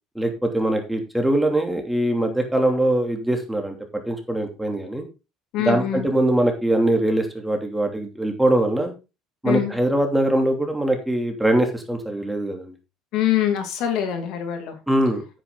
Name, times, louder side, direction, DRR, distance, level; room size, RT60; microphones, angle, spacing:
voice 1, 0.1-3.7 4.1-5.0 5.6-8.9 9.4-12.7 14.9-15.2, right 1 dB, 5° right, 3 dB, 2.8 m, -22 dB
voice 2, 5.5-6.1 9.4-9.7 13.1-14.8, left 10 dB, 65° left, 6 dB, 2.6 m, -24 dB
9.5 x 9.0 x 3.9 m, 0.29 s
cardioid pair, 125°, 0 cm